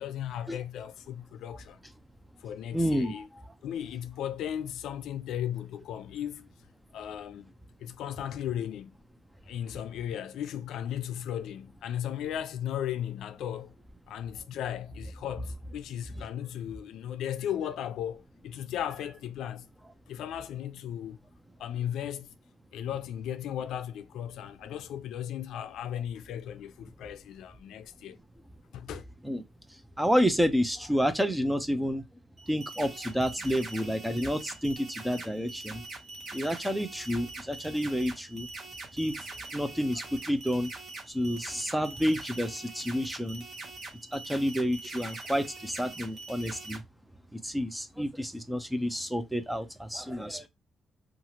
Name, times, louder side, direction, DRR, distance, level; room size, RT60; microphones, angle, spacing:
voice 1, 0.0-1.8 2.4-3.3 3.6-6.5 6.9-7.5 7.8-9.0 9.5-13.7 14.1-19.6 20.1-21.2 21.6-22.3 22.7-28.2 28.7-29.0, left 10 dB, 85° left, 0.3 m, -36 dB
voice 2, 2.7-3.2 29.2-29.4 29.7-32.0 32.5-35.8 36.3-38.5 38.9-40.7 41.1-43.4 44.1-46.8 47.3-50.5, equal, ahead, 0.4 m, -29 dB
sound 1, 32.4-46.8, right 3 dB, 35° right, 0.8 m, -43 dB
2.8 x 2.4 x 2.9 m
cardioid pair, 175°, 0 cm